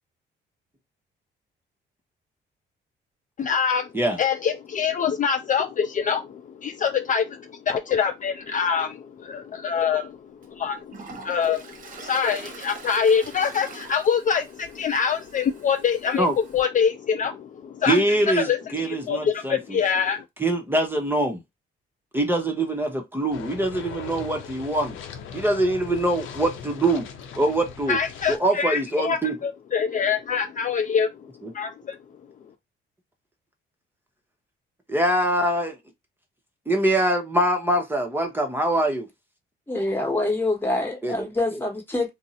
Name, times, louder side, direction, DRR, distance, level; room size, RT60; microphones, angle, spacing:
voice 1, 3.4-3.9 4.2-10.2 10.5-18.0 18.4-20.2 27.9-29.2 29.4-31.1 31.5-32.0, left 7 dB, 40° left, 0.4 m, -25 dB
Toilet flush, 9.8-9.9 10.4-16.6, right 4 dB, 45° right, 0.9 m, -44 dB
voice 2, 17.8-19.8 20.4-21.4 22.1-25.0 25.3-27.1 27.3-28.0 28.3-29.4 31.4-31.5 34.9-35.8 36.7-39.1 41.0-41.3, right 1 dB, 10° right, 0.7 m, -23 dB
sound 1, 23.3-28.4, left 7 dB, 80° left, 0.6 m, -39 dB
voice 3, 39.7-42.1, left 2 dB, 10° left, 1.2 m, -25 dB
2.6 x 2.0 x 3.9 m
cardioid pair, 90°, 20 cm